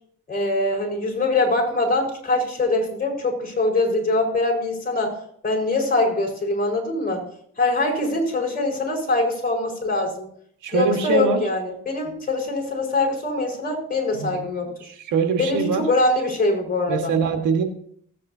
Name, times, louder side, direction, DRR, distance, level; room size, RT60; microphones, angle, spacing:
voice 1, 0.3-5.1 5.4-7.2 7.6-10.3 10.7-14.7 15.4-17.1, left 2 dB, 30° left, 0 dB, 4.9 m, -23 dB
voice 2, 10.6-11.4 14.2-14.4 14.8-15.8 16.9-17.6, right 5 dB, 85° right, 5 dB, 1.7 m, -23 dB
16.5 x 8.7 x 2.8 m, 0.64 s
cardioid pair, 90°, 30 cm